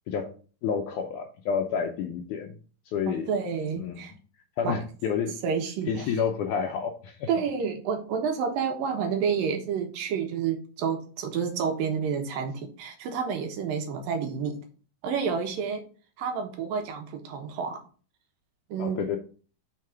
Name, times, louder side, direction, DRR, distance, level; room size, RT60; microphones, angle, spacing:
voice 1, 0.6-2.6 2.9-3.3 3.8-4.0 4.6-5.4 5.9-7.3 18.8-19.2, left 7 dB, 75° left, 4 dB, 1.8 m, -29 dB
voice 2, 3.1-4.1 4.6-4.8 5.4-6.1 7.3-14.6 15.0-15.8 16.2-17.8 18.7-19.0, right 6 dB, 75° right, 4 dB, 2.7 m, -29 dB
6.4 x 3.7 x 5.7 m, 0.39 s
omnidirectional pair, 4.2 m